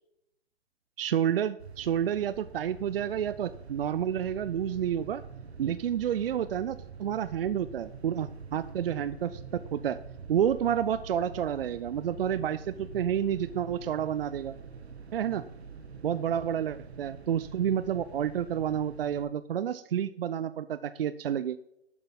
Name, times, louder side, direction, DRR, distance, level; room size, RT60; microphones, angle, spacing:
voice 1, 1.0-5.2 5.6-10.0 10.3-14.5 15.1-15.4 16.0-21.6, right 9 dB, 65° right, 14 dB, 0.6 m, -30 dB
sound 1, 1.6-19.3, right 5 dB, 85° right, 1.3 m, -46 dB
12.0 x 8.8 x 3.9 m, 0.82 s
hypercardioid pair, 130°, 31 cm